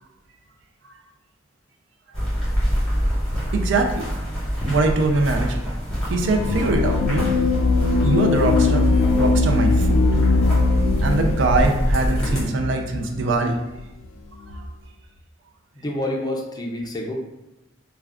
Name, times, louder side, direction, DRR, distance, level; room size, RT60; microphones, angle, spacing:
sound 1, 2.1-12.4, equal, 5° left, 1.1 m, -26 dB
voice 1, 3.5-4.0 4.7-5.6 6.0-7.3 7.8-8.9 9.2-10.0 11.0-13.6 14.5-14.6, right 3 dB, 65° right, 3 dB, 0.4 m, -22 dB
sound 2, 6.1-13.3, left 3 dB, 90° left, 0.3 m, -21 dB
voice 2, 15.7-17.1, left 1 dB, 20° left, 0 dB, 0.4 m, -28 dB
2.3 x 2.2 x 3.4 m, 0.93 s
head